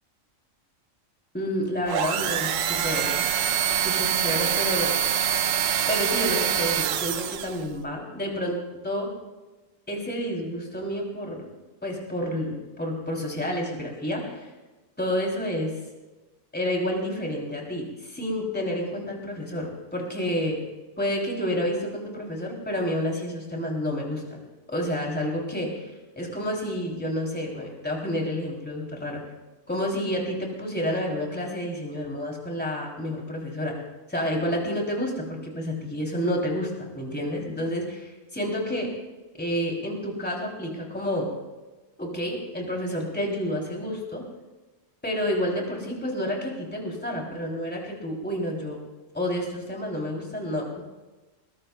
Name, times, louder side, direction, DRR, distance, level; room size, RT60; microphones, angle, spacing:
voice 1, 1.3-3.3 3.7-5.3 5.9-8.6 8.8-9.1 9.9-11.4 11.8-14.5 15.0-15.7 16.5-20.6 21.0-24.4 24.7-25.8 26.2-29.2 29.7-33.8 34.1-38.9 39.3-41.3 42.0-44.2 45.0-48.8 49.1-50.8, equal, 5° left, -1 dB, 2.9 m, -29 dB
sound 1, 1.9-7.7, right 9 dB, 80° right, 1.0 m, -25 dB
21.5 x 20.0 x 2.2 m, 1.2 s
omnidirectional pair, 1.3 m